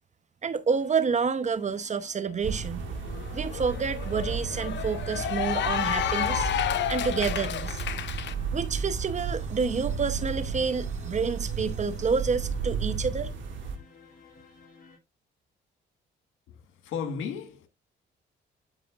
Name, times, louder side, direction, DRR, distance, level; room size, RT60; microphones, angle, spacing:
voice 1, 0.4-2.9 3.3-6.5 6.9-7.8 8.5-13.3, right 5 dB, 35° right, 0.8 m, -29 dB
sound 1, 0.8-15.0, left 4 dB, 45° left, 3.1 m, -53 dB
sound 2, 2.4-13.8, right 5 dB, 75° right, 1.8 m, -33 dB
Cheering / Applause, 2.9-8.3, left 11 dB, 65° left, 0.8 m, -31 dB
voice 2, 16.5-17.7, left 6 dB, 85° left, 1.5 m, -35 dB
13.0 x 5.1 x 2.4 m
cardioid pair, 90°, 20 cm